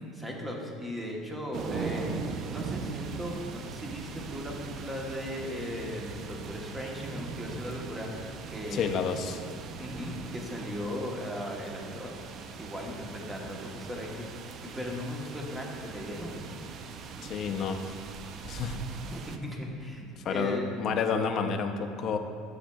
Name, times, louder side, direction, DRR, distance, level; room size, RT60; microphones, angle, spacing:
voice 1, 0.1-2.1 2.5-8.9 9.8-12.1 12.6-16.4 19.1-20.7, equal, 10° right, -1 dB, 0.9 m, -37 dB
sound 1, 1.5-19.4, right 5 dB, 40° right, 0.4 m, -40 dB
voice 2, 8.7-9.4 17.2-17.8 18.4-18.8 20.2-22.2, left 6 dB, 40° left, 5 dB, 0.5 m, -30 dB
10.0 x 7.4 x 2.3 m, 2.6 s
cardioid pair, 155°, 0 cm